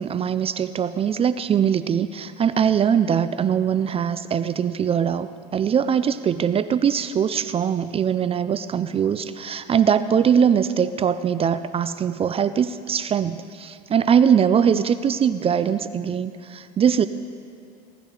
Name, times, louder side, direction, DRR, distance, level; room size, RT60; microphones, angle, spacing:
voice 1, 0.0-17.1, right 8 dB, 30° right, 13 dB, 0.5 m, -21 dB
19.5 x 13.0 x 4.9 m, 2.3 s
supercardioid pair, 105°, 20 cm